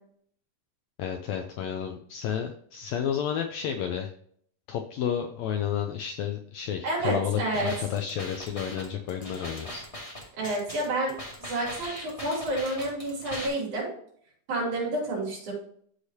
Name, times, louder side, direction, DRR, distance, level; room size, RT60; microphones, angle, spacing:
voice 1, 1.0-4.1 4.7-9.8, left 8 dB, 90° left, 5 dB, 1.5 m, -31 dB
voice 2, 6.8-7.7 10.4-11.1 11.4-13.9 14.5-15.5, right 1 dB, 65° right, -3 dB, 4.6 m, -29 dB
sound 1, 7.5-13.5, left 1 dB, 15° left, 1.6 m, -40 dB
13.0 x 4.9 x 2.8 m, 0.63 s
omnidirectional pair, 3.8 m